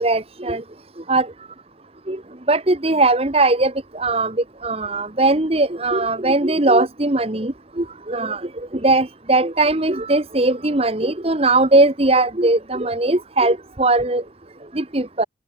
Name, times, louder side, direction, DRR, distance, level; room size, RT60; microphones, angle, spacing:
voice 1, 0.0-0.6 1.1-1.3 2.1-2.2 2.5-3.7 4.0-4.3 4.6-7.5 7.8-8.4 8.8-14.2 14.8-15.2, right 2 dB, 35° right, 1.3 m, -19 dB
head